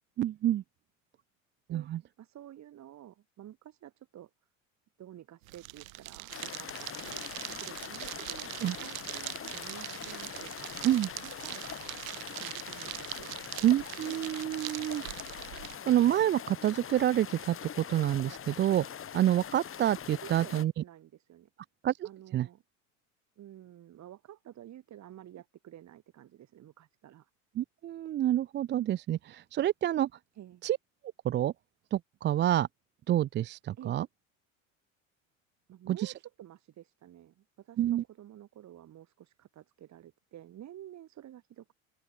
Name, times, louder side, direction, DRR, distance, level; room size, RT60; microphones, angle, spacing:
voice 1, 0.2-0.6 1.7-2.0 8.6-8.8 10.8-11.1 13.6-15.0 15.9-18.8 19.1-20.7 21.8-22.5 27.6-30.1 30.6-30.8 31.2-31.5 31.9-32.7 33.1-34.1 36.0-36.1 37.8-38.0, right 12 dB, 30° right, 0.5 m, -28 dB
voice 2, 2.2-4.3 5.0-7.2 7.6-10.9 11.2-12.0 12.3-13.5 20.2-21.5 22.0-22.6 23.4-27.3 30.4-30.6 33.8-34.0 35.7-41.7, right 12 dB, 45° right, 3.9 m, -51 dB
sound 1, 5.4-15.8, right 18 dB, 85° right, 0.7 m, -42 dB
sound 2, 6.3-20.6, left 8 dB, 30° left, 2.5 m, -43 dB
open air
hypercardioid pair, 90°, 40 cm